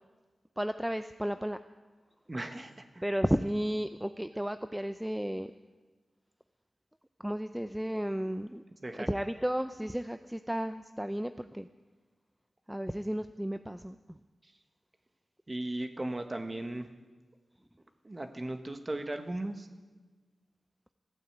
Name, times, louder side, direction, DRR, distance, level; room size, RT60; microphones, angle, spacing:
voice 1, 0.6-1.6 3.0-5.5 7.2-8.6 9.1-11.7 12.7-14.0, equal, 5° right, 10 dB, 0.5 m, -33 dB
voice 2, 2.3-3.0 8.2-8.3 8.8-9.1 14.4-14.5 15.5-16.9 18.0-19.7, right 1 dB, 30° right, 6 dB, 1.4 m, -37 dB
15.0 x 9.1 x 8.2 m, 1.4 s
wide cardioid pair, 75°, 0 cm